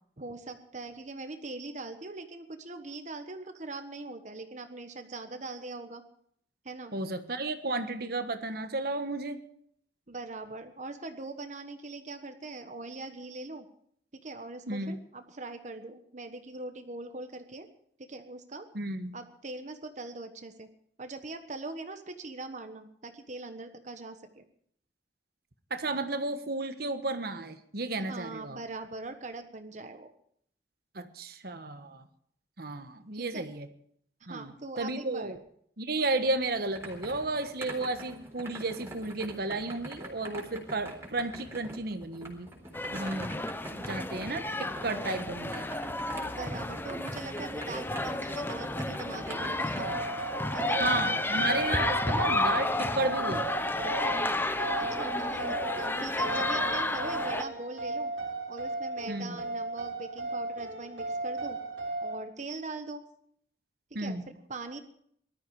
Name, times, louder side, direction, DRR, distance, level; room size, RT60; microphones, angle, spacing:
voice 1, 0.2-6.0 6.6-6.9 10.1-13.7 14.2-17.7 18.0-18.7 19.1-20.7 21.0-24.4 28.1-30.1 33.1-33.5 34.3-35.3 46.4-49.9 50.5-50.8 54.7-58.1 58.5-61.6 62.0-63.0 64.0-64.8, right 3 dB, 45° right, 7 dB, 1.2 m, -41 dB
voice 2, 6.9-9.4 14.7-15.0 18.7-19.2 25.7-28.6 30.9-32.0 32.6-33.7 34.3-35.4 35.8-42.5 42.9-43.4 43.7-45.7 50.8-53.4 59.1-59.4 63.9-64.2, right 2 dB, 60° right, 9 dB, 1.3 m, -33 dB
sound 1, 36.2-50.2, right 1 dB, 15° right, 3.9 m, -45 dB
sound 2, 42.7-57.4, left 2 dB, 10° left, 0.8 m, -31 dB
sound 3, 49.4-62.2, right 2 dB, 90° right, 3.3 m, -36 dB
19.5 x 13.0 x 4.8 m, 0.66 s
head